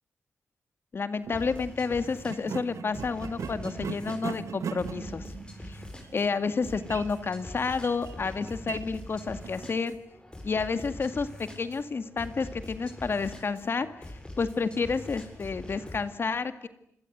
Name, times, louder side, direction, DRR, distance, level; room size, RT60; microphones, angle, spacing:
voice 1, 0.9-5.2 5.6-5.8 6.1-10.0 10.4-13.9 14.4-16.7, left 4 dB, 50° left, 10 dB, 2.1 m, -30 dB
sound 1, 1.2-1.4 2.2-9.7, right 6 dB, 85° right, 1.9 m, -40 dB
sound 2, 1.3-16.1, left 1 dB, 20° left, 7.5 m, -44 dB
27.5 x 22.5 x 9.4 m, 0.73 s
wide cardioid pair, 115°, 5 cm